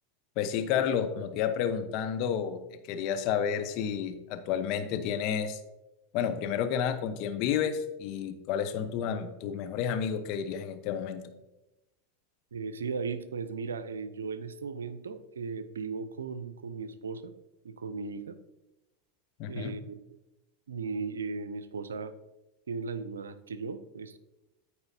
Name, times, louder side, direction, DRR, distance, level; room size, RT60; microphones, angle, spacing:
voice 1, 0.4-2.6 2.9-5.6 6.1-11.3 19.4-19.8, left 8 dB, 55° left, 7 dB, 0.9 m, -30 dB
voice 2, 12.5-17.3 17.6-18.4 19.5-20.0 20.7-22.1 22.7-24.2, right 5 dB, 85° right, 13 dB, 0.6 m, -37 dB
14.0 x 4.8 x 2.8 m, 0.98 s
hypercardioid pair, 95°, 0 cm